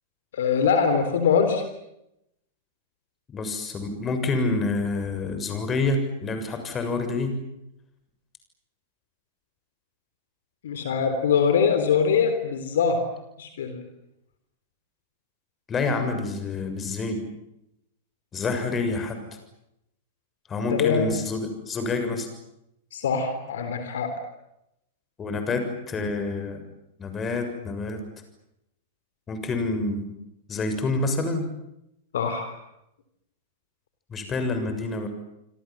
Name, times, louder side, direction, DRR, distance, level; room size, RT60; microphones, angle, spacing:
voice 1, 0.3-1.6 10.6-13.1 13.4-13.8 20.7-21.1 22.9-24.2 32.1-32.6, left 6 dB, 65° left, 8 dB, 3.7 m, -23 dB
voice 2, 3.3-7.3 15.7-17.2 18.3-19.2 20.5-22.3 25.2-26.6 27.0-28.0 29.3-30.1 30.5-31.4 34.1-35.1, left 3 dB, 20° left, 7 dB, 6.9 m, -27 dB
27.0 x 26.5 x 7.6 m, 0.84 s
figure-of-eight pair, 100°, 0 cm